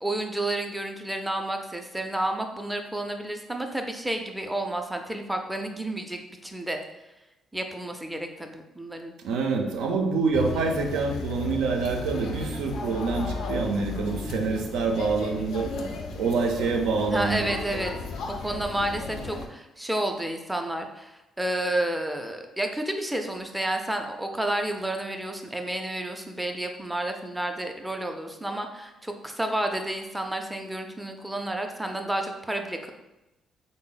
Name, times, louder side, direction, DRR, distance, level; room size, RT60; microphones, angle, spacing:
voice 1, 0.0-6.8 7.5-9.1 17.1-17.9 18.4-32.9, right 1 dB, 10° right, 4 dB, 0.4 m, -30 dB
voice 2, 9.2-15.7 16.1-17.5, right 4 dB, 90° right, 2 dB, 0.5 m, -26 dB
sound 1, 10.3-19.5, left 3 dB, 80° left, 0.4 m, -34 dB
3.7 x 2.0 x 3.8 m, 0.99 s
cardioid pair, 90°, 0 cm